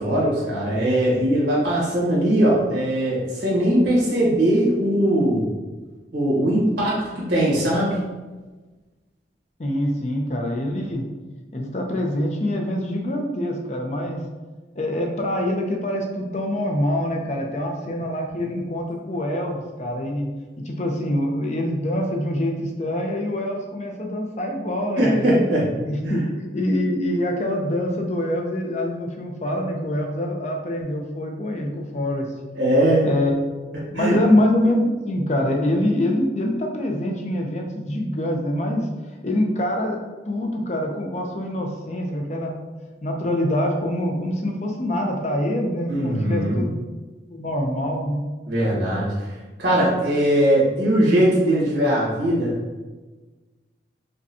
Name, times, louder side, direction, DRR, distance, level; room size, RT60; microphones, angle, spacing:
voice 1, 0.0-5.5 6.1-8.0 25.0-25.7 26.0-26.2 32.5-33.1 33.9-34.2 45.9-46.6 48.5-49.3 49.6-52.6, right 1 dB, 80° right, -6 dB, 1.5 m, -20 dB
voice 2, 9.6-11.0 11.5-14.2 14.8-20.3 20.6-25.4 25.8-26.2 26.5-32.3 33.0-33.3 33.9-38.9 39.2-40.0 40.3-42.5 43.0-46.7 47.3-48.2, left 1 dB, 40° left, 2 dB, 0.5 m, -25 dB
5.2 x 2.2 x 2.7 m, 1.2 s
head